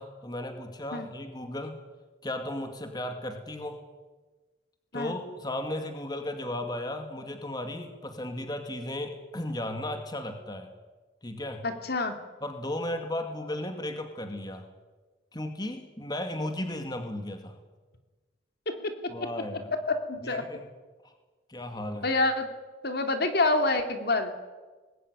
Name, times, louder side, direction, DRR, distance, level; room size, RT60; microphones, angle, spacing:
voice 1, 0.0-1.8 2.2-3.8 4.9-10.7 11.2-11.6 12.4-14.7 15.3-17.6 19.1-19.7 20.2-20.7 21.0-21.1 21.5-22.1, left 1 dB, 20° left, 6 dB, 2.3 m, -35 dB
voice 2, 11.6-12.1 18.7-18.9 19.9-20.4 22.0-22.5 22.8-24.3, left 2 dB, 55° left, 7 dB, 2.7 m, -27 dB
23.5 x 20.5 x 9.9 m, 1.3 s
head